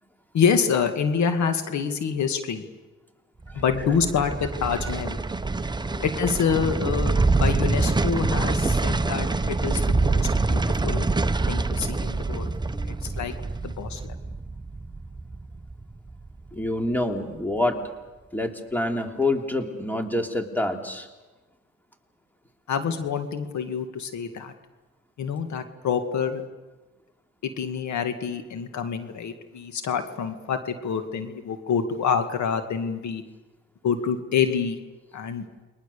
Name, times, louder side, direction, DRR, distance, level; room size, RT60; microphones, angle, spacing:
voice 1, 0.3-2.6 3.5-5.2 6.0-11.1 11.5-12.5 12.9-13.3 13.6-14.0 22.7-24.5 25.2-26.4 27.4-33.2 33.8-34.8 35.1-35.4, left 6 dB, 70° left, 7 dB, 2.2 m, -27 dB
sound 1, 3.4-16.6 16.9-17.0, right 3 dB, 15° right, 0.9 m, -25 dB
voice 2, 5.6-6.0 12.7-13.0 16.5-17.8 18.3-21.1, left 1 dB, 5° left, 4 dB, 3.1 m, -27 dB
30.0 x 22.5 x 6.9 m, 1.2 s
cardioid pair, 90°, 30 cm